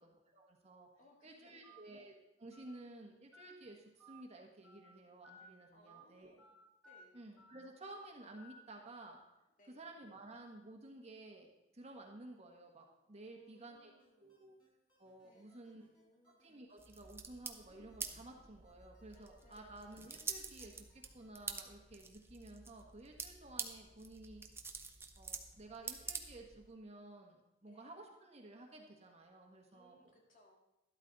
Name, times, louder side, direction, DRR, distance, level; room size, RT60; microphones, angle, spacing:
voice 1, 0.0-0.9 1.2-2.1 2.4-6.3 7.1-9.2 9.7-13.9 14.2-14.5 15.0-15.9 16.4-24.4 25.1-30.1, right 2 dB, 35° right, 1 dB, 1.3 m, -54 dB
voice 2, 1.0-1.9 5.7-6.5 6.8-7.2 9.6-9.9 13.2-14.4 15.2-16.4 17.7-18.1 19.1-19.8 27.6-27.9 29.7-30.6, left 1 dB, 45° left, 1 dB, 2.1 m, -68 dB
Telephone, 1.6-1.8 2.5-2.7 3.3-3.5 4.0-4.2 4.6-4.8 5.2-5.5 5.9-6.0 6.4-6.5 6.8-7.0 7.4-7.5 7.8-8.0 8.4-8.6, right 1 dB, 5° left, 2.4 m, -59 dB
sound 1, 14.0-21.5, left 1 dB, 25° left, 4.5 m, -74 dB
sound 2, 16.8-26.7, right 4 dB, 15° right, 0.8 m, -47 dB
12.5 x 12.5 x 4.0 m, 0.93 s
head